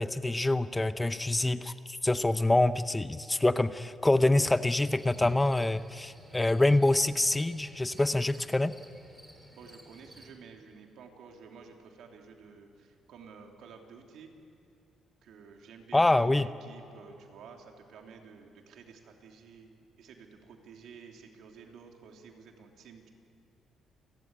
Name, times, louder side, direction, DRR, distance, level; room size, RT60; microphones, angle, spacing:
voice 1, 0.0-8.7 15.9-16.5, left 2 dB, 15° left, 13 dB, 0.7 m, -26 dB
sound 1, 4.5-10.3, equal, 5° right, 4.2 m, -54 dB
voice 2, 9.5-14.3 15.2-19.7 20.0-23.1, right 5 dB, 75° right, 2 dB, 3.1 m, -51 dB
29.0 x 14.0 x 9.8 m, 2.8 s
cardioid pair, 90°, 0 cm